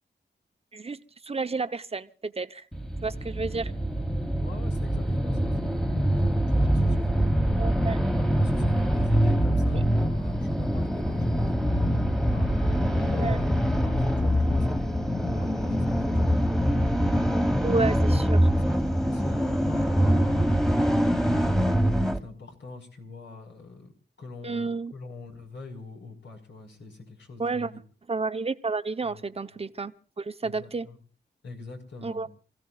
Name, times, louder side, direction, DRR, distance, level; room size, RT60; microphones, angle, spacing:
voice 1, 0.7-2.6 3.0-3.7 7.6-8.0 9.7-9.9 12.1-12.2 13.1-13.4 17.6-18.5 24.4-24.9 27.4-27.7 28.1-30.9 32.0-32.3, right 4 dB, 30° right, 1.0 m, -31 dB
sound 1, 2.7-22.2, equal, ahead, 1.5 m, -24 dB
voice 2, 4.4-7.4 8.3-17.4 17.8-18.0 18.4-20.6 21.3-23.9 24.2-27.8 29.0-29.3 30.4-31.0 31.4-32.3, left 3 dB, 75° left, 5.3 m, -43 dB
28.5 x 16.0 x 2.5 m
wide cardioid pair, 85°, 19 cm